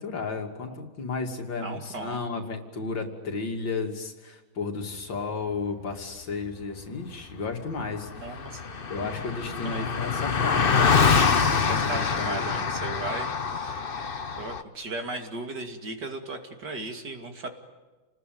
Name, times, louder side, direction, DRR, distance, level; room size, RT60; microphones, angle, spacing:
voice 1, 0.0-8.5 8.9-12.6, left 4 dB, 70° left, 4 dB, 3.4 m, -33 dB
voice 2, 1.6-2.2 8.1-8.6 9.6-9.9 11.7-13.9 14.4-17.5, right 2 dB, 60° right, 5 dB, 3.2 m, -36 dB
Car passing by, 7.5-7.6 7.8-14.6, left 5 dB, 35° left, 1.0 m, -25 dB
29.0 x 20.0 x 9.4 m, 1.2 s
omnidirectional pair, 2.1 m